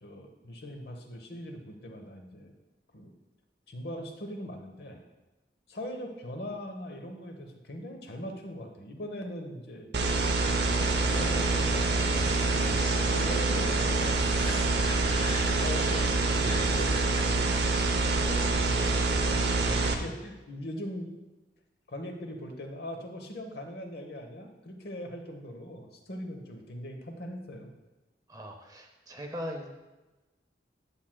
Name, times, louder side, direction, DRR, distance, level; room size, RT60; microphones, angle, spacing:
voice 1, 0.0-2.5 2.9-3.1 3.7-5.0 5.7-9.9 10.7-11.9 13.0-14.6 15.5-17.7 18.2-21.1 21.9-27.7, equal, 60° left, 4 dB, 0.9 m, -40 dB
sound 1, 9.9-19.9, right 3 dB, 65° right, 0.7 m, -26 dB
sound 2, 10.0-17.6, left 1 dB, 25° left, 1.0 m, -40 dB
voice 2, 28.3-29.7, equal, 20° right, 3 dB, 0.7 m, -39 dB
9.7 x 7.4 x 2.2 m, 1.1 s
head